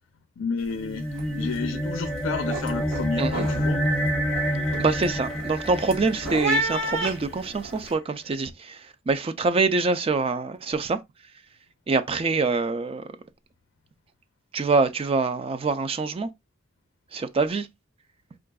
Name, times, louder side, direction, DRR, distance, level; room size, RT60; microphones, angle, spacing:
voice 1, 0.4-1.1 1.3-3.8, left 5 dB, 80° left, 0.4 m, -31 dB
sound 1, 0.6-0.9 1.1-1.6 2.0-7.9, right 1 dB, 90° right, 1.4 m, -32 dB
sound 2, 0.8-7.4, equal, 5° left, 0.7 m, -28 dB
voice 2, 4.8-11.0 11.9-13.0 14.5-16.3 17.1-17.7, right 3 dB, 30° right, 0.4 m, -25 dB
4.6 x 2.5 x 2.2 m
head